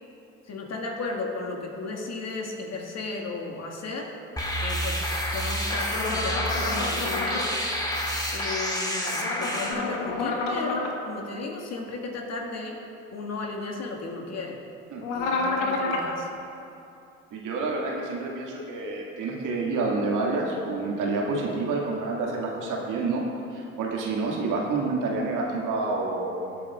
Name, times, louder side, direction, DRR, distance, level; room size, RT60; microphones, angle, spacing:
voice 1, 0.5-4.1 4.6-7.9 8.3-12.8 13.1-14.6 15.1-16.3, left 3 dB, 45° left, 0 dB, 1.8 m, -34 dB
sound 1, 4.4-9.7, equal, 10° left, 1.7 m, -29 dB
sound 2, 6.0-7.5 9.1-10.9 15.0-16.1, left 3 dB, 70° left, 1.2 m, -29 dB
voice 2, 17.3-23.2 23.5-26.7, right 3 dB, 55° right, -2 dB, 2.0 m, -28 dB
22.5 x 8.3 x 2.4 m, 2.7 s
figure-of-eight pair, 50°, 38 cm